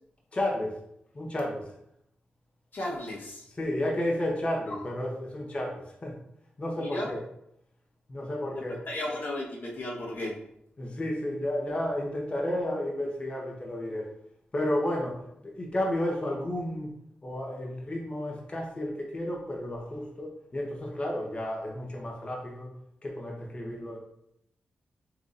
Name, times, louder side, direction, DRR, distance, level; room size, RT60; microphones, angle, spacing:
voice 1, 0.3-0.8 1.1-1.7 3.6-6.2 6.6-7.2 8.1-8.8 10.8-14.1 14.5-16.9 17.2-22.7 23.0-24.0, left 1 dB, 35° left, -1 dB, 1.1 m, -32 dB
voice 2, 2.7-3.4 4.7-4.8 6.8-7.1 8.9-10.4, left 1 dB, 65° left, -3 dB, 1.2 m, -34 dB
4.8 x 4.1 x 2.5 m, 0.75 s
cardioid pair, 65°, 4 cm